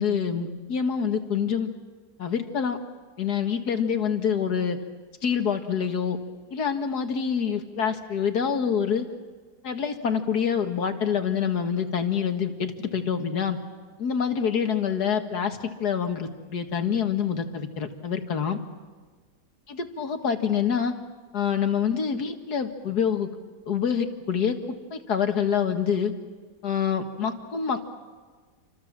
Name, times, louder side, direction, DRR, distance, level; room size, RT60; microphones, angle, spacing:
voice 1, 0.0-1.7 2.2-2.8 3.2-4.8 5.2-6.2 6.5-9.1 9.6-13.6 14.0-18.6 19.7-20.9 21.3-23.3 23.7-24.6 24.9-26.1 26.6-27.9, left 7 dB, 70° left, 6 dB, 2.2 m, -26 dB
29.0 x 25.0 x 7.4 m, 1.4 s
omnidirectional pair, 1.7 m